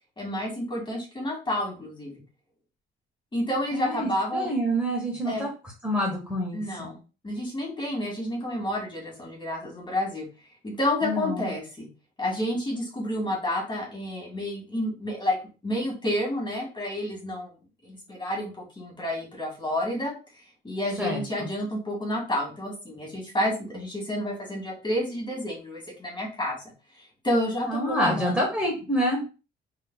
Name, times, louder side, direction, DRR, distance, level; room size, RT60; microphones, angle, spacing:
voice 1, 0.2-2.1 3.3-4.5 5.3-5.5 6.5-7.0 7.2-10.3 10.6-11.9 12.2-15.4 15.6-17.5 17.8-20.2 20.6-26.6 27.2-28.4, left 1 dB, 25° left, -2 dB, 2.0 m, -29 dB
voice 2, 3.7-5.5 5.8-6.9 11.0-11.5 21.0-21.5 27.7-29.2, equal, 5° right, -3 dB, 1.4 m, -27 dB
3.8 x 3.2 x 2.3 m, 0.32 s
cardioid pair, 90°, 20 cm